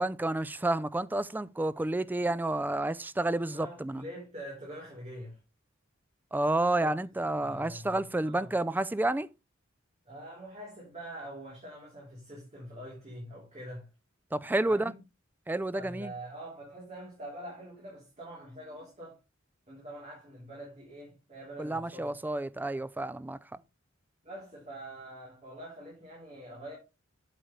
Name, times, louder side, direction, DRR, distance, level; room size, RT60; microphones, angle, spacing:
voice 1, 0.0-4.0 6.3-9.3 14.3-14.9 15.5-16.1 21.6-23.4, right 2 dB, 10° right, 0.3 m, -30 dB
voice 2, 3.5-5.4 6.8-6.9 7.4-8.6 10.1-13.9 14.7-15.0 15.7-19.2 19.7-22.2 24.2-26.8, right 1 dB, 35° right, 3.6 m, -45 dB
8.0 x 7.9 x 3.2 m
head